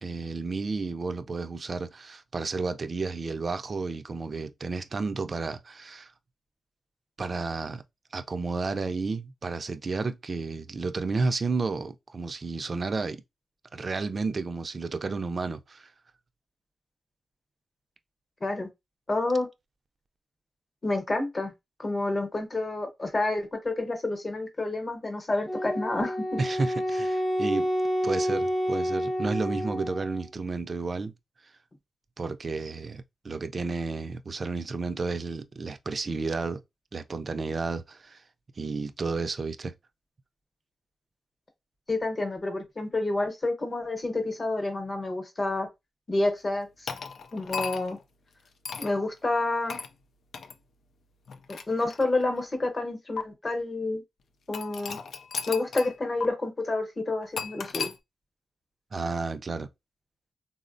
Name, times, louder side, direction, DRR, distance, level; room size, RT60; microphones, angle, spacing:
voice 1, 0.0-6.1 7.2-7.8 8.1-13.2 13.7-15.9 26.4-27.7 28.0-31.1 32.2-36.6 36.9-38.2 38.6-39.7 58.9-59.7, right 3 dB, 45° right, 0.4 m, -32 dB
voice 2, 19.1-19.5 20.8-21.5 21.8-26.4 41.9-45.7 46.1-46.9 47.3-48.0 48.8-49.8 51.5-54.0 54.5-55.0 55.5-57.9, left 2 dB, 35° left, 0.9 m, -29 dB
Wind instrument woodwind instrument, 25.5-30.3, equal, 15° left, 0.6 m, -29 dB
sound 1, 46.9-48.0 48.6-49.0 49.7-49.9 50.3-50.5 51.3-52.4 53.2-53.3 54.5-55.9 56.2-56.3 57.4-58.0, left 5 dB, 80° left, 0.3 m, -35 dB
3.7 x 2.0 x 2.5 m
wide cardioid pair, 105°, 0 cm